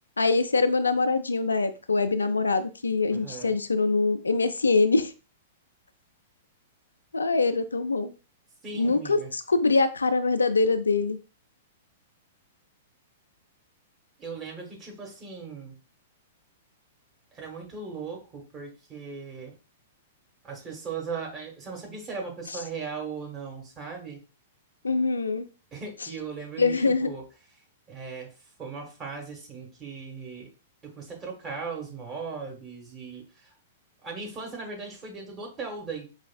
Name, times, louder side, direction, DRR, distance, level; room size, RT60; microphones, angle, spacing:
voice 1, 0.2-5.1 7.1-8.1 8.7-11.2 24.8-25.5 26.6-27.1, left 3 dB, 85° left, 10 dB, 0.3 m, -24 dB
voice 2, 3.1-3.5 8.6-9.3 14.2-15.8 17.3-19.5 20.4-24.2 25.7-27.2 27.9-28.3 28.6-30.5 30.8-33.5 34.0-36.1, right 5 dB, 25° right, 1 dB, 1.3 m, -38 dB
4.8 x 2.4 x 2.2 m, 0.34 s
figure-of-eight pair, 105°, 0 cm